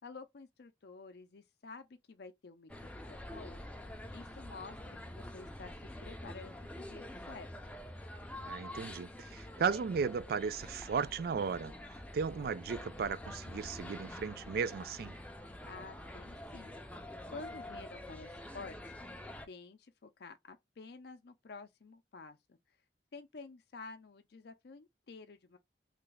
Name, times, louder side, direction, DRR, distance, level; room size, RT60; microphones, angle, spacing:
voice 1, 0.0-2.7 3.1-3.6 4.1-5.7 6.0-7.8 15.7-16.7 17.3-19.0 19.5-22.6 23.1-25.6, left 4 dB, 65° left, 0.5 m, -50 dB
sound 1, 2.7-19.5, left 1 dB, 5° left, 0.5 m, -47 dB
voice 2, 8.5-11.7 12.1-15.2, right 6 dB, 60° right, 0.3 m, -35 dB
3.3 x 2.3 x 3.9 m
head